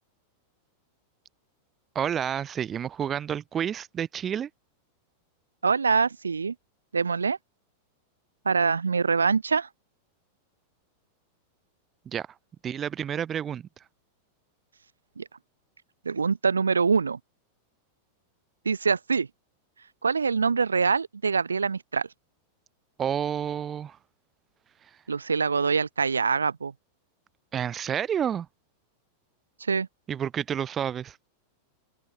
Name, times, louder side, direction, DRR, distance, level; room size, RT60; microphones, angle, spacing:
voice 1, 2.0-4.5 12.1-12.3 12.6-13.7 23.0-24.0 27.5-28.5 30.1-31.2, right 9 dB, 25° right, 3.6 m, -29 dB
voice 2, 5.6-6.5 6.9-7.4 8.4-9.7 15.2-15.3 16.0-17.2 18.6-19.3 20.0-22.1 25.1-26.7 29.7-29.9, right 5 dB, 75° right, 1.1 m, -24 dB
open air
figure-of-eight pair, 90°, 0 cm